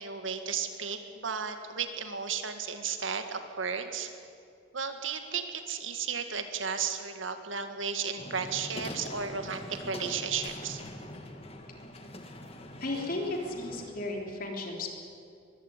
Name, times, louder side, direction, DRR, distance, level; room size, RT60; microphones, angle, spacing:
voice 1, 0.0-4.1 4.7-10.8, right 6 dB, 85° right, 8 dB, 1.9 m, -34 dB
sound 1, 8.2-13.9, left 1 dB, 30° left, 2.0 m, -43 dB
voice 2, 12.8-14.9, left 2 dB, 45° left, 1 dB, 3.6 m, -34 dB
22.5 x 16.0 x 9.8 m, 2.4 s
head